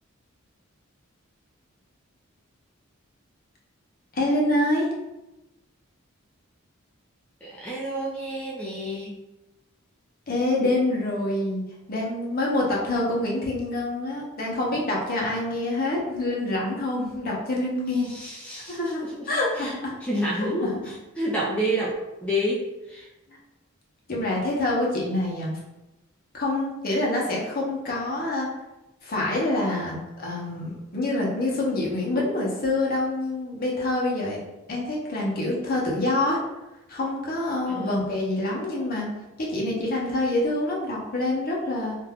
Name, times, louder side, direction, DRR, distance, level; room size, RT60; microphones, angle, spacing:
voice 1, 4.1-4.9 10.3-11.6 11.9-18.1 18.6-19.9 20.6-20.7 24.1-25.5 26.3-28.5 29.0-34.4 34.7-36.4 36.9-39.1 39.4-42.0, left 2 dB, 45° left, -3 dB, 0.7 m, -26 dB
voice 2, 7.4-9.1 18.0-19.3 19.6-19.7 20.0-21.9 22.2-23.1 37.7-37.9, equal, 5° left, -6 dB, 0.4 m, -29 dB
2.5 x 2.2 x 3.4 m, 1.0 s
head